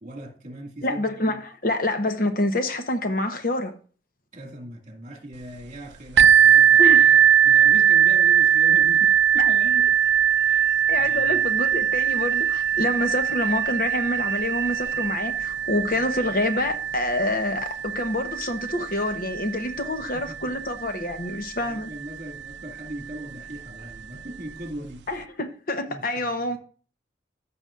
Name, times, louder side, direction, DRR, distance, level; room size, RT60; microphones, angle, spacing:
voice 1, 0.0-1.4 4.3-7.2 7.4-9.9 10.5-11.5 19.8-20.5 21.6-25.0 25.9-26.6, right 1 dB, 40° right, 2.1 m, -40 dB
voice 2, 0.8-3.7 6.8-7.2 9.4-9.5 10.9-21.9 25.1-26.6, left 1 dB, 50° left, 1.0 m, -27 dB
sound 1, 6.2-21.7 22.5-22.6 23.1-23.2, right 9 dB, 70° right, 0.5 m, -20 dB
Train, 9.6-22.0, right 3 dB, 20° left, 3.1 m, -50 dB
14.5 x 6.2 x 2.5 m
head